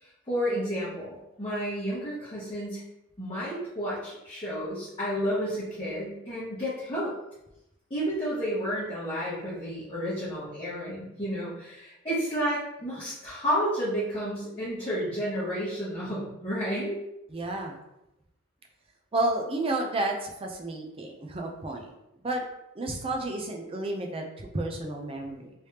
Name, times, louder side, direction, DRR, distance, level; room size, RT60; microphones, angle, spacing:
voice 1, 0.0-2.8 3.2-7.1 7.9-17.0, equal, 25° left, -12 dB, 1.2 m, -31 dB
voice 2, 17.3-17.8 19.1-21.9 22.2-22.4 22.7-25.5, right 2 dB, 25° right, 2 dB, 0.5 m, -31 dB
3.3 x 3.2 x 2.8 m, 0.87 s
head